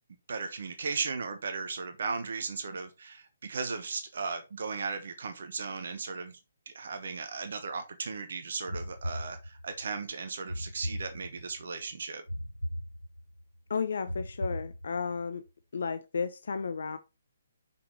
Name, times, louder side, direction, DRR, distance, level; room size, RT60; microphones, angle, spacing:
voice 1, 0.3-6.4 6.7-12.2, right 4 dB, 55° right, 1.2 m, -36 dB
sound 1, 8.7-9.9 10.5-11.6 12.3-13.4 14.1-15.2, equal, 90° left, 0.3 m, -38 dB
voice 2, 13.7-15.4 15.7-17.0, left 5 dB, 55° left, 0.6 m, -33 dB
6.1 x 5.8 x 4.4 m
figure-of-eight pair, 135°, 0 cm